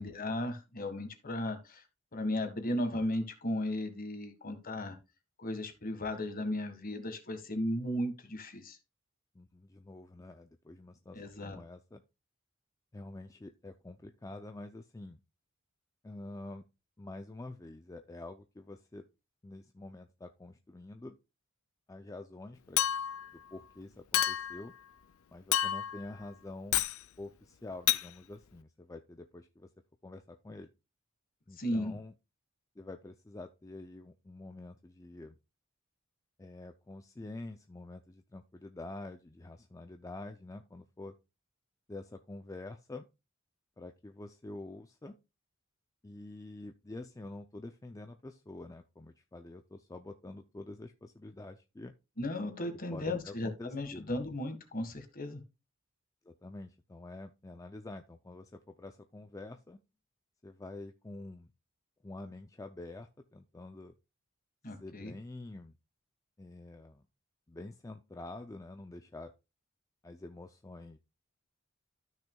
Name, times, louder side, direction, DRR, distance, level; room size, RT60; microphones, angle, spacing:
voice 1, 0.0-1.8 2.1-5.0 5.4-8.8 11.1-11.6 31.6-32.0 52.2-55.4 64.6-65.1, left 1 dB, 45° left, 7 dB, 1.6 m, -35 dB
voice 2, 9.3-12.0 12.9-15.2 16.0-16.6 17.0-19.0 19.4-21.2 21.9-22.8 23.3-24.7 25.3-26.8 27.2-29.7 30.0-30.7 31.5-32.1 32.8-35.4 36.4-41.1 41.9-43.1 43.8-45.1 46.0-51.9 52.9-54.1 56.2-59.8 60.4-61.5 62.0-63.9 64.8-65.7 66.4-67.0 67.5-69.3 70.0-71.0, left 2 dB, 15° left, 6 dB, 0.4 m, -47 dB
Chink clink, 22.8-23.3 24.1-24.6 25.5-26.0 26.7-27.0 27.9-28.1, left 12 dB, 90° left, 0.5 m, -29 dB
13.5 x 6.2 x 2.3 m, 0.26 s
head